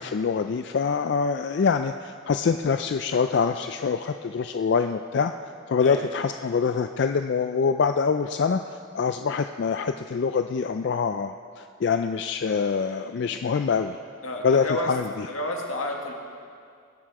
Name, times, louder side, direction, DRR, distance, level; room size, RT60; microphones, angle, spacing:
voice 1, 0.0-5.3 5.7-14.0 14.4-15.3, left 5 dB, 55° left, 7 dB, 0.3 m, -25 dB
voice 2, 14.2-14.9 15.3-16.1, left 1 dB, 85° left, 1 dB, 1.7 m, -30 dB
20.5 x 7.6 x 4.7 m, 2.3 s
head